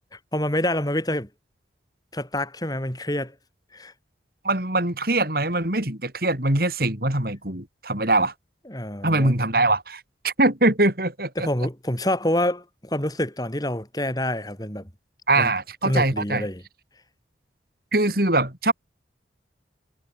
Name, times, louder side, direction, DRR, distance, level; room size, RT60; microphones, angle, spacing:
voice 1, 0.1-1.3 2.1-3.3 3.7-3.9 8.7-9.3 11.4-14.9 15.4-15.5 15.8-16.6, left 1 dB, 20° left, 6.8 m, -27 dB
voice 2, 4.4-8.3 9.0-11.5 15.3-16.4 17.9-18.7, right 2 dB, 55° right, 5.0 m, -22 dB
head